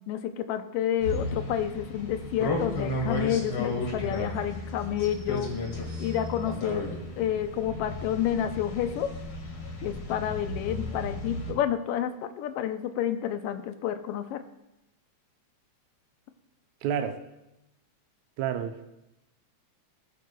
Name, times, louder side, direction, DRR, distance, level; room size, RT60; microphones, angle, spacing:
voice 1, 0.1-5.5 6.0-6.9 7.2-9.1 9.8-14.4, left 10 dB, 75° left, 9 dB, 1.4 m, -29 dB
sound 1, 1.0-11.5, left 2 dB, 50° left, 2.4 m, -34 dB
voice 2, 16.8-17.2 18.4-18.9, right 8 dB, 80° right, 6 dB, 1.9 m, -29 dB
20.0 x 9.3 x 2.3 m, 0.92 s
omnidirectional pair, 3.3 m